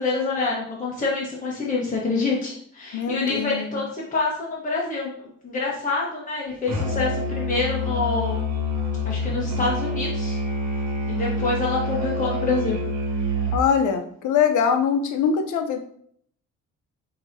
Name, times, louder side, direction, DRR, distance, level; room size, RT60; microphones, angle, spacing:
voice 1, 0.0-8.5 9.0-10.4 11.1-12.8, left 3 dB, 25° left, -4 dB, 1.0 m, -26 dB
voice 2, 2.9-3.8 13.5-15.8, left 7 dB, 80° left, 6 dB, 0.7 m, -22 dB
Musical instrument, 6.7-13.7, left 1 dB, 60° right, 1.3 m, -27 dB
6.1 x 2.9 x 2.6 m, 0.64 s
cardioid pair, 90°, 30 cm